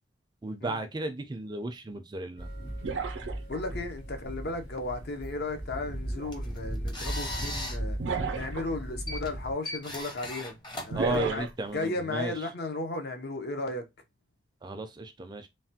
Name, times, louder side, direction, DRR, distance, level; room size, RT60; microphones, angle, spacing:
voice 1, 0.4-2.5 10.9-12.5 14.6-15.5, right 2 dB, 25° right, 0.4 m, -34 dB
sound 1, 2.4-9.5, right 1 dB, 80° left, 1.8 m, -37 dB
sound 2, 2.8-3.7 6.1-6.3 8.0-8.7 10.9-11.5, right 5 dB, 90° right, 0.4 m, -33 dB
voice 2, 3.5-8.0 8.3-10.5 10.8-11.5 11.7-13.9, left 2 dB, 60° left, 0.6 m, -35 dB
sound 3, 6.1-11.7, left 1 dB, 25° left, 0.7 m, -40 dB
3.2 x 2.1 x 2.7 m
head